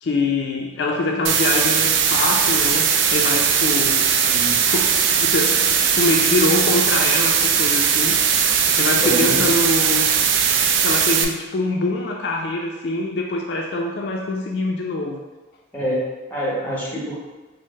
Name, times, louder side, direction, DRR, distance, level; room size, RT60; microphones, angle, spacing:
voice 1, 0.0-4.1 4.7-8.4 8.8-10.1 10.8-15.2, left 2 dB, 60° left, 0 dB, 0.3 m, -24 dB
sound 1, 1.2-11.2, right 7 dB, 75° right, 0.3 m, -19 dB
voice 2, 4.2-4.6 9.0-9.5 15.7-17.2, right 1 dB, 10° left, -6 dB, 0.8 m, -26 dB
4.4 x 2.0 x 3.0 m, 1.2 s
head